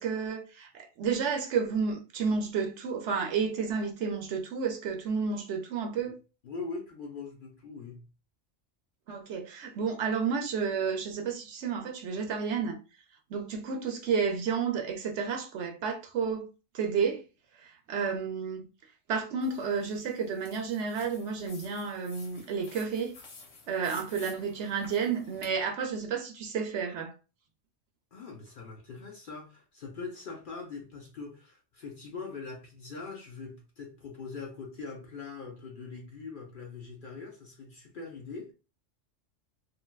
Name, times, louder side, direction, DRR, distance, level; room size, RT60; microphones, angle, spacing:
voice 1, 0.0-6.2 9.1-12.8 13.3-16.5 16.7-17.2 17.6-18.7 19.1-23.1 23.7-27.1, right 6 dB, 70° right, 0.8 m, -31 dB
voice 2, 6.4-8.1 28.1-38.5, left 4 dB, 50° left, 0.7 m, -42 dB
sound 1, 19.4-25.5, left 3 dB, 70° left, 1.2 m, -52 dB
3.2 x 2.6 x 2.2 m
omnidirectional pair, 1.3 m